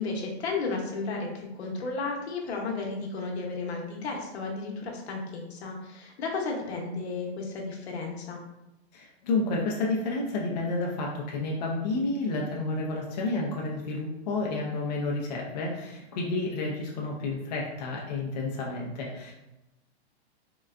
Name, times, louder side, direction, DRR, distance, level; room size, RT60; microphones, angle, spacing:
voice 1, 0.0-8.4, left 3 dB, 75° left, 0 dB, 0.9 m, -33 dB
voice 2, 8.9-19.3, left 2 dB, 40° left, -2 dB, 0.4 m, -30 dB
3.7 x 2.2 x 2.4 m, 0.95 s
hypercardioid pair, 170°, 33 cm